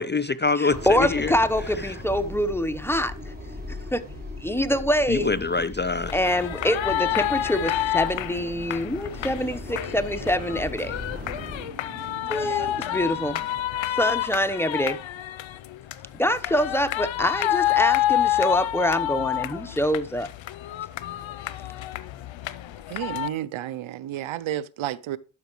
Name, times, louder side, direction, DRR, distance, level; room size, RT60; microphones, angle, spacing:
voice 1, 0.0-1.3 5.1-6.1, left 4 dB, 25° left, 0.4 m, -25 dB
voice 2, 0.6-3.3 3.7-4.1 4.4-5.3 6.1-10.9 12.3-13.4 14.0-15.0 16.2-20.3, equal, 5° left, 0.9 m, -25 dB
sound 1, 0.7-11.7, left 2 dB, 20° right, 4.4 m, -38 dB
sound 2, 6.1-23.3, left 13 dB, 75° left, 0.6 m, -28 dB
Motorcycle, 8.1-13.6, right 4 dB, 70° right, 3.8 m, -47 dB
voice 3, 22.9-25.2, right 12 dB, 85° right, 0.6 m, -31 dB
12.0 x 5.7 x 3.1 m
cardioid pair, 50°, 47 cm